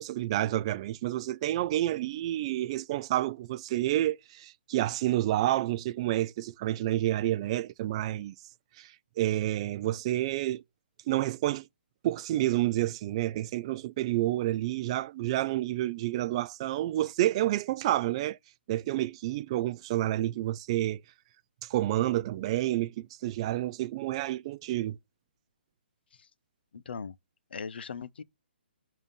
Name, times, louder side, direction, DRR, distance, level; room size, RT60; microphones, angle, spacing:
voice 1, 0.0-8.3 8.8-10.6 11.1-11.6 12.0-18.4 18.7-21.0 21.6-25.0, right 14 dB, 30° right, 0.3 m, -29 dB
voice 2, 26.7-27.2 27.5-28.2, left 6 dB, 70° left, 0.6 m, -39 dB
7.0 x 2.7 x 5.3 m
hypercardioid pair, 145°, 6 cm